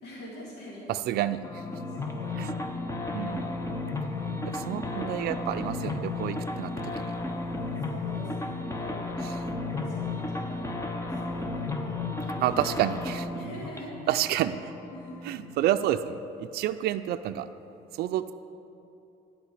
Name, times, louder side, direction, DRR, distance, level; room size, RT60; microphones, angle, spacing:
voice 1, 0.0-0.9 1.8-2.4 4.1-4.7 7.8-12.6 13.3-14.2 14.9-15.2, equal, 85° left, -6 dB, 2.3 m, -45 dB
voice 2, 1.1-1.4 2.4-2.5 3.1-3.6 4.5-7.2 12.4-13.3 14.1-14.6 15.2-17.5 18.0-18.3, right 12 dB, 70° right, 10 dB, 0.4 m, -29 dB
sound 1, 1.4-15.5, left 2 dB, 15° left, 0.9 m, -33 dB
11.0 x 5.1 x 8.4 m, 2.8 s
cardioid pair, 110°, 17 cm